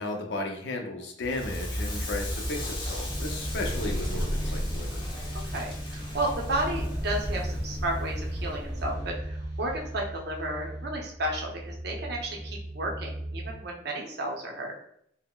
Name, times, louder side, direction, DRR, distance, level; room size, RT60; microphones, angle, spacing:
voice 1, 0.0-5.0, left 2 dB, 65° left, 3 dB, 0.5 m, -34 dB
Crackle, 1.2-10.2, equal, 25° left, 0.8 m, -33 dB
sound 1, 1.7-9.1, equal, 15° right, 0.7 m, -48 dB
sound 2, 3.1-13.6, right 1 dB, 5° left, 0.3 m, -39 dB
voice 2, 5.3-14.7, right 1 dB, 60° right, 0 dB, 0.6 m, -33 dB
3.7 x 2.0 x 2.2 m, 0.70 s
head